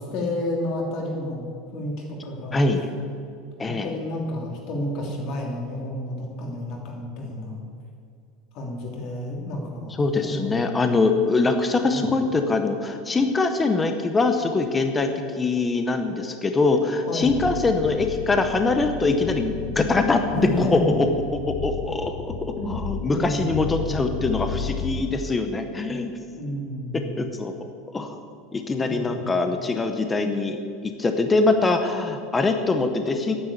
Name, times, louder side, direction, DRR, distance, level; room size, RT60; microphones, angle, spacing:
voice 1, 0.0-2.6 3.6-7.6 8.5-10.8 11.9-12.1 17.1-17.4 20.3-21.0 22.6-22.7 23.1-23.6 26.3-27.2 28.7-29.2, left 1 dB, 40° left, 0 dB, 2.8 m, -30 dB
voice 2, 2.5-2.9 3.6-3.9 10.0-20.2 20.6-21.1 21.6-26.1 27.2-27.5 27.9-28.2 28.5-33.3, left 3 dB, 10° left, 6 dB, 0.7 m, -23 dB
Le Radio, 17.2-25.0, left 5 dB, 70° left, 3.8 m, -33 dB
12.0 x 9.7 x 8.5 m, 2.3 s
supercardioid pair, 175°, 0 cm